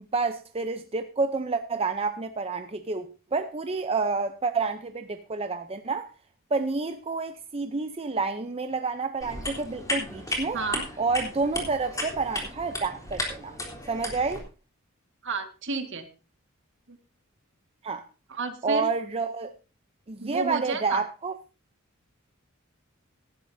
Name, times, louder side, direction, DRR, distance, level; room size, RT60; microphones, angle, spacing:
voice 1, 0.1-6.1 6.5-10.6 11.0-13.6 13.9-14.4 17.8-18.0 18.6-19.5 20.1-21.3, right 4 dB, 30° right, 0.7 m, -29 dB
sound 1, 9.2-14.4, left 1 dB, 15° left, 3.4 m, -34 dB
voice 2, 10.5-10.8 15.2-16.1 16.9-17.0 18.3-18.9 20.2-21.0, right 4 dB, 60° right, 1.9 m, -31 dB
17.5 x 11.5 x 2.7 m
head